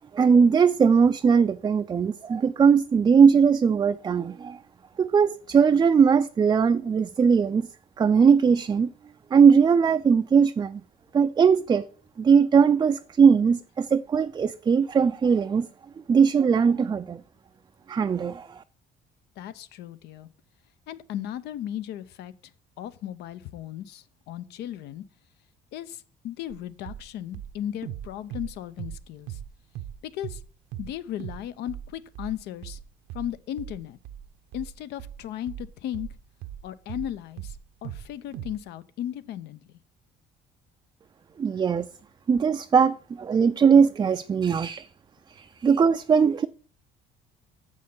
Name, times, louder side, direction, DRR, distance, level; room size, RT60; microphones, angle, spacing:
voice 1, 0.1-4.6 5.0-7.7 8.0-8.9 9.3-10.8 11.1-11.8 12.2-15.7 16.1-17.2 17.9-18.6 41.4-41.9 42.3-44.9 45.3-46.5, right 6 dB, 25° right, 0.3 m, -20 dB
voice 2, 19.4-20.3 20.9-22.3 22.8-25.0 25.7-29.4 30.0-30.4 30.8-32.8 33.1-34.0 34.5-36.1 36.6-39.8, left 11 dB, 80° left, 0.6 m, -36 dB
sound 1, 26.5-26.6 26.9-27.1 27.3-29.5 29.8-30.0 30.2-30.5 30.7-30.9 31.2-31.4 31.7-37.1 37.4-38.1 38.3-38.6, right 11 dB, 85° right, 0.8 m, -38 dB
7.6 x 6.4 x 5.4 m
cardioid pair, 110°, 17 cm